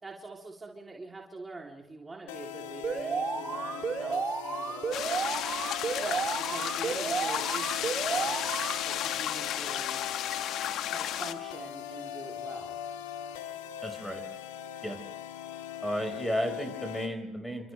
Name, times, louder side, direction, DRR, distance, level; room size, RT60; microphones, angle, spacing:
voice 1, 0.0-5.0 5.9-10.0 10.9-12.8, right 3 dB, 25° right, 0 dB, 3.5 m, -45 dB
sound 1, 2.3-17.1, left 10 dB, 80° left, 1.8 m, -40 dB
Alarm, 2.8-8.8, right 5 dB, 40° right, 3.1 m, -32 dB
sound 2, 4.9-11.3, left 11 dB, 60° left, 1.2 m, -33 dB
voice 2, 13.8-14.2 14.8-15.0 15.8-17.7, equal, 5° left, 5 dB, 5.7 m, -33 dB
29.0 x 26.0 x 3.5 m, 0.93 s
hypercardioid pair, 60°, 0 cm